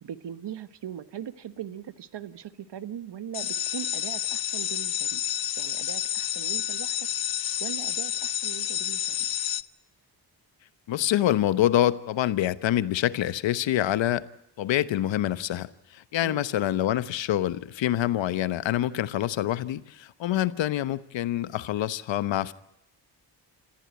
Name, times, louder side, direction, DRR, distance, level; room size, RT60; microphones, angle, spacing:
voice 1, 0.0-5.2 5.6-7.0 7.6-9.3 16.2-16.5, right 10 dB, 70° right, 13 dB, 1.4 m, -40 dB
sound 1, 3.3-9.6, left 10 dB, 55° left, 0.8 m, -29 dB
voice 2, 10.9-14.3 14.6-22.5, left 12 dB, 85° left, 15 dB, 1.1 m, -26 dB
27.5 x 15.0 x 9.5 m, 0.81 s
cardioid pair, 80°, 44 cm